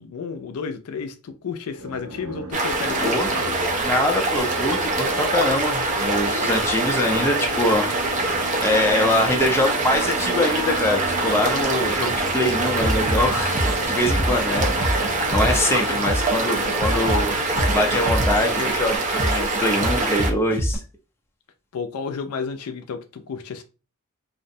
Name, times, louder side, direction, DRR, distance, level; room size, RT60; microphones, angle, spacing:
voice 1, 0.0-3.5 14.5-14.7 16.0-16.1 21.7-23.6, left 5 dB, 75° left, 0.4 m, -32 dB
sound 1, 1.7-19.0, equal, 85° right, 0.6 m, -35 dB
sound 2, 2.5-20.3, right 2 dB, 35° right, 0.5 m, -24 dB
voice 2, 3.0-3.4 3.8-7.9 8.6-14.7 15.3-20.8, left 1 dB, 10° left, 0.4 m, -23 dB
sound 3, 12.8-20.8, equal, 10° right, 0.8 m, -26 dB
2.5 x 2.1 x 2.6 m
head